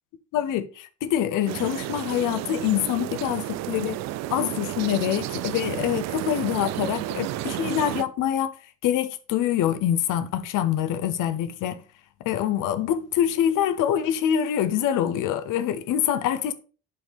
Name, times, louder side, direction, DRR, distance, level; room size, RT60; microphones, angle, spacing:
voice 1, 0.3-4.0 4.3-8.5 8.8-11.8 12.2-16.5, left 10 dB, 50° left, 0.8 m, -25 dB
sound 1, 1.5-8.0, right 14 dB, 45° right, 0.4 m, -32 dB
8.2 x 4.3 x 3.4 m
figure-of-eight pair, 55°, 41 cm